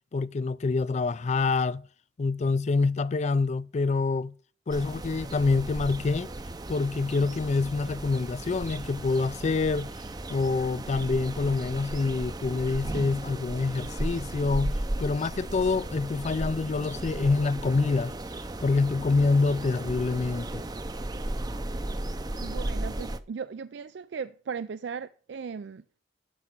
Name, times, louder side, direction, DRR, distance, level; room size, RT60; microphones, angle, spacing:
voice 1, 0.1-1.8 2.2-4.3 4.7-6.3 6.7-9.9 10.3-18.1 18.6-20.6, left 3 dB, 40° left, 0.4 m, -26 dB
sound 1, 4.7-23.2, right 1 dB, 20° right, 0.6 m, -35 dB
voice 2, 22.4-25.8, right 6 dB, 70° right, 0.4 m, -37 dB
12.5 x 5.2 x 5.9 m
head